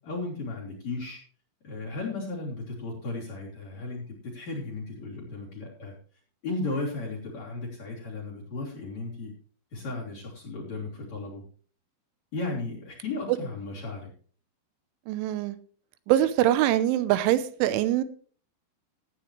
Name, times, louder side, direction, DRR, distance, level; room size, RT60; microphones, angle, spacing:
voice 1, 0.0-1.2 1.6-4.0 4.3-5.9 6.4-9.3 9.7-11.4 12.3-14.1, left 3 dB, 40° left, 4.1 m, -35 dB
voice 2, 15.1-15.6 16.1-18.0, right 13 dB, 90° right, 3.3 m, -23 dB
16.5 x 9.4 x 3.2 m
omnidirectional pair, 5.4 m